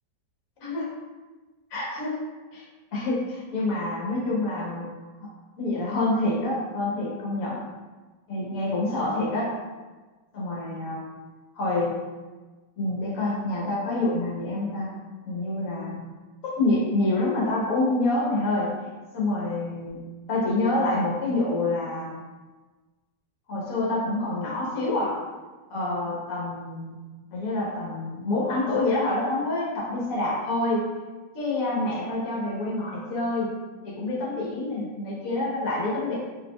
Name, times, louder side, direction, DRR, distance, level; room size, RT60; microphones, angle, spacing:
voice 1, 1.7-2.2 2.5-2.6 2.9-4.9 5.6-7.6 8.3-9.5 10.3-11.1 11.5-12.0 12.8-15.0 15.2-16.0 16.4-18.7 19.1-20.0 20.3-22.2 23.5-25.2 25.7-27.0 27.3-30.9 31.3-33.5 33.8-36.2, left 2 dB, 55° left, -5 dB, 1.3 m, -27 dB
4.8 x 3.0 x 2.2 m, 1.3 s
omnidirectional pair, 1.9 m